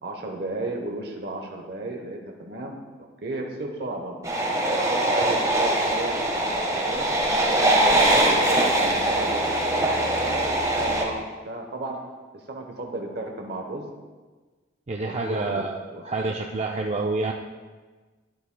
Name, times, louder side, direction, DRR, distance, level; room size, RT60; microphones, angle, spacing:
voice 1, 0.0-2.8 3.2-4.2 4.7-7.9 8.3-10.5 10.8-12.0 12.3-13.9 15.0-16.0, right 2 dB, 60° right, 1 dB, 0.9 m, -34 dB
sound 1, 4.2-11.0, right 1 dB, 20° right, 1.3 m, -22 dB
voice 2, 14.9-17.3, right 3 dB, 35° right, 1 dB, 0.4 m, -28 dB
12.0 x 9.9 x 2.2 m, 1.3 s
head